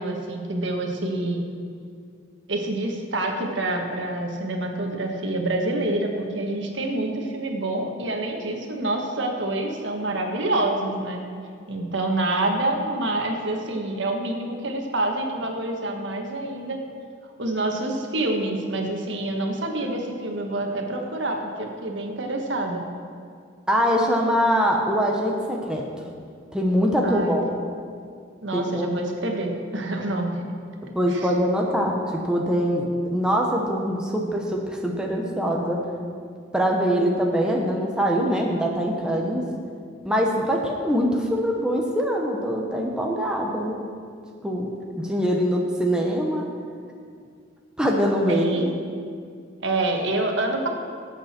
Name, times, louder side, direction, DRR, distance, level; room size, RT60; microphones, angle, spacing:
voice 1, 0.0-1.4 2.5-11.2 11.7-16.8 17.4-22.8 27.0-27.6 28.4-30.4 31.1-31.3 48.3-48.7 49.6-50.7, right 2 dB, 70° right, 2 dB, 1.5 m, -27 dB
voice 2, 23.7-25.8 26.5-27.5 28.5-28.9 30.9-35.8 36.5-39.4 40.0-43.8 44.4-44.7 45.0-46.5 47.8-48.7, equal, 5° right, -1 dB, 1.0 m, -23 dB
18.0 x 8.0 x 4.4 m, 2.2 s
head